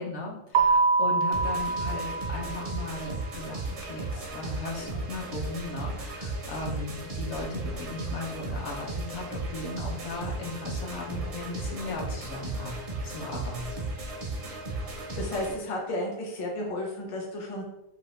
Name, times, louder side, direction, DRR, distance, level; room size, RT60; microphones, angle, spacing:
voice 1, 0.0-12.7 13.0-13.9, left 2 dB, 75° left, -1 dB, 0.9 m, -37 dB
Keyboard (musical), 0.5-3.1, right 4 dB, 85° right, 0.9 m, -25 dB
sound 1, 1.3-15.5, right 2 dB, 50° right, 0.4 m, -35 dB
voice 2, 15.2-17.6, left 1 dB, 40° left, -1 dB, 0.5 m, -33 dB
2.8 x 2.2 x 3.1 m, 0.89 s
omnidirectional pair, 1.2 m